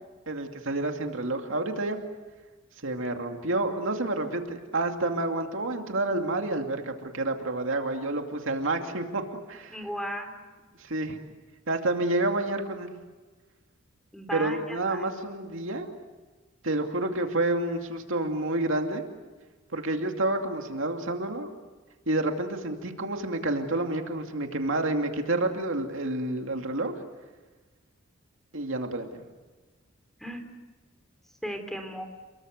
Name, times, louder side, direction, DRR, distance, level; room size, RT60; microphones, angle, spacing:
voice 1, 0.3-2.0 2.8-9.2 9.5-9.8 10.8-11.2 11.7-12.9 14.3-15.9 16.6-19.0 19.7-21.5 22.1-26.9 28.5-29.2, right 2 dB, 70° right, 4 dB, 2.5 m, -29 dB
voice 2, 9.7-10.5 14.1-15.1 30.2-30.4 31.4-32.1, equal, ahead, 6 dB, 3.5 m, -36 dB
29.5 x 22.0 x 8.0 m, 1.3 s
head